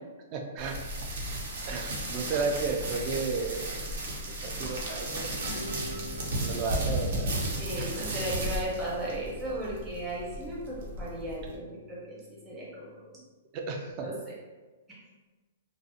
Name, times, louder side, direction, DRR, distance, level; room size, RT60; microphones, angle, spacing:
voice 1, 0.3-1.1 1.7-3.8 4.4-5.4 6.4-8.2 13.1-13.2 13.5-14.1, right 4 dB, 35° right, 2 dB, 0.4 m, -34 dB
sound 1, 0.6-11.6, right 1 dB, 65° right, 0.7 m, -34 dB
sound 2, 5.4-13.1, left 2 dB, 75° left, 0.5 m, -47 dB
sound 3, 5.4-8.5, left 2 dB, 90° right, 1.0 m, -50 dB
voice 2, 7.6-12.2 12.4-13.1 14.0-14.1 14.9-15.0, right 1 dB, 15° right, -6 dB, 0.8 m, -36 dB
2.3 x 2.0 x 2.7 m, 1.3 s
hypercardioid pair, 150°, 0 cm